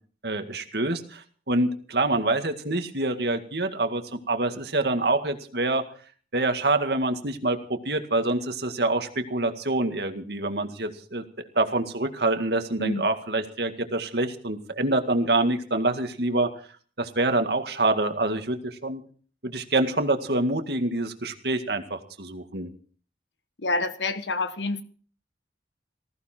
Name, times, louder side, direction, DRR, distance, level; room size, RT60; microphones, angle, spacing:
voice 1, 0.2-5.8 6.3-11.2 11.6-16.5 17.0-19.0 19.4-22.7, right 2 dB, 65° right, 2.0 m, -26 dB
voice 2, 23.6-24.8, left 2 dB, 80° left, 1.3 m, -27 dB
19.5 x 15.0 x 4.5 m
head